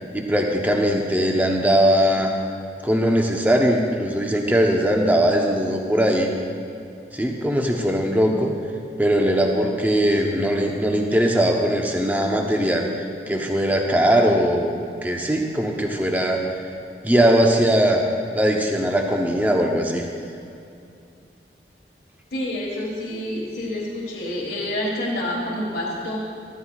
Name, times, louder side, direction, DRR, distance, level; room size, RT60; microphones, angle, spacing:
voice 1, 0.1-2.3 2.8-6.3 7.1-8.5 9.0-12.9 13.3-14.7 15.0-16.4 17.0-18.0 18.3-20.0, equal, 10° right, 1 dB, 0.9 m, -20 dB
voice 2, 22.3-26.2, left 1 dB, 70° left, -4 dB, 1.6 m, -28 dB
14.0 x 14.0 x 2.4 m, 2.6 s
head